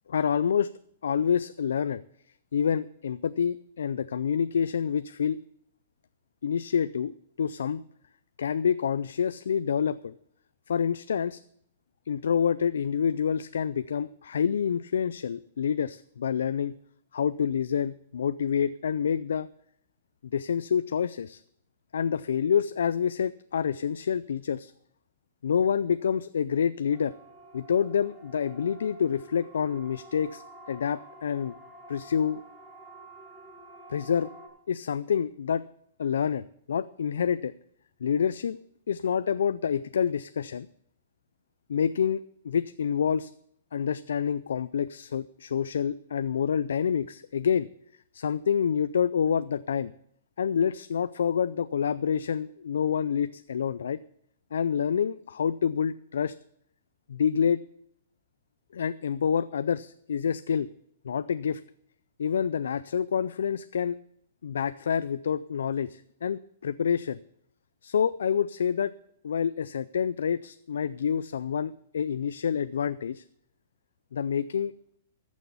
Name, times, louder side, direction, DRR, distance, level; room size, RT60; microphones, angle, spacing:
voice 1, 0.1-0.7 1.0-2.0 2.5-5.4 6.4-7.1 7.4-7.8 8.4-10.1 10.7-11.4 12.1-16.8 17.1-19.5 20.3-21.4 21.9-24.7 25.4-27.1 27.5-30.4 30.7-31.6 31.9-32.4 33.9-34.3 34.7-35.6 36.0-37.5 38.0-38.6 38.9-40.7 41.7-43.3 43.7-47.7 48.1-49.9 50.4-54.0 54.5-56.3 57.1-57.6 58.7-60.7 61.0-61.6 62.2-64.0 64.4-67.2 67.8-68.9 69.2-73.2 74.1-74.7, left 7 dB, 90° left, 14 dB, 0.4 m, -27 dB
Siren, 26.9-34.5, right 1 dB, 10° right, 5.6 m, -49 dB
14.5 x 6.3 x 7.0 m, 0.70 s
hypercardioid pair, 150°, 0 cm